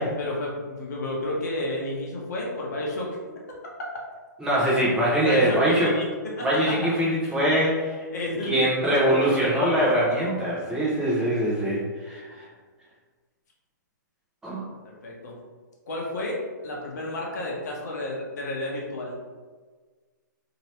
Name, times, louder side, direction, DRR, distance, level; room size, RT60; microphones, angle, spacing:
voice 1, 0.2-3.1 5.2-6.1 6.4-6.5 8.1-10.0 14.8-15.3 15.9-19.2, left 1 dB, 60° left, -2 dB, 0.9 m, -31 dB
voice 2, 4.4-5.9 6.4-8.1 8.4-12.5 14.4-14.7, right 1 dB, 5° right, -8 dB, 0.7 m, -23 dB
2.9 x 2.8 x 3.1 m, 1.5 s
hypercardioid pair, 150°, 11 cm